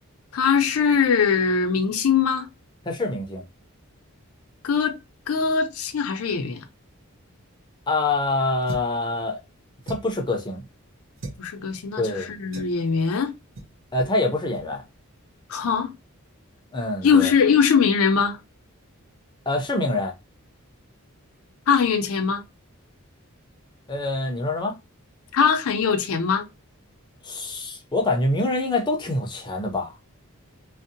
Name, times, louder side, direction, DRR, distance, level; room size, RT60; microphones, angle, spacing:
voice 1, 0.3-2.5 4.6-4.9 5.3-6.6 11.4-13.3 15.5-15.9 17.0-18.4 21.7-22.4 25.3-26.5, left 6 dB, 75° left, 0.5 m, -21 dB
voice 2, 2.9-3.4 7.9-9.4 9.9-10.6 12.0-12.3 13.9-14.8 16.7-17.3 19.5-20.1 23.9-24.7 27.2-29.9, left 2 dB, 20° left, 0.5 m, -25 dB
sound 1, 8.7-9.0 9.8-10.2 11.2-11.4 12.5-12.8 13.5-13.7 14.0-14.2 14.5-14.7, right 2 dB, 65° right, 0.6 m, -37 dB
2.6 x 2.0 x 2.5 m
head